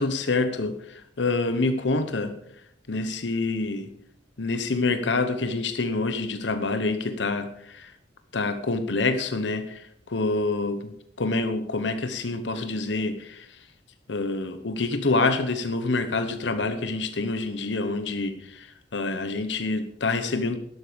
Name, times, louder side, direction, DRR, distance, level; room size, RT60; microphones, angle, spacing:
voice 1, 0.0-2.4 2.9-3.9 4.4-7.9 8.3-10.9 11.2-13.6 14.1-20.6, left 3 dB, 70° left, 9 dB, 0.9 m, -27 dB
12.5 x 12.0 x 5.2 m, 0.72 s
head